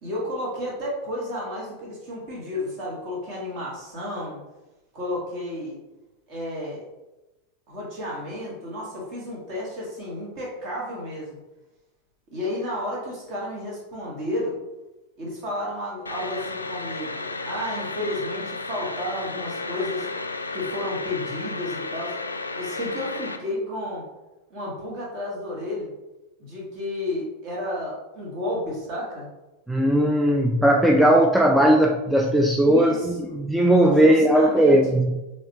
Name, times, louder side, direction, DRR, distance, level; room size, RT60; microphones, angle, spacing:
voice 1, 0.0-4.4 4.9-5.8 6.3-6.8 7.7-11.4 12.3-14.6 15.2-20.1 20.5-22.2 22.5-24.0 24.5-25.9 26.4-29.3 32.6-33.3 33.9-34.8, left 1 dB, 40° right, -4 dB, 1.5 m, -32 dB
sound 1, 16.1-23.4, left 3 dB, 80° left, 0.3 m, -33 dB
voice 2, 29.7-35.2, right 1 dB, 5° right, 1 dB, 0.3 m, -18 dB
3.9 x 3.3 x 3.0 m, 1.0 s
figure-of-eight pair, 90°, 0 cm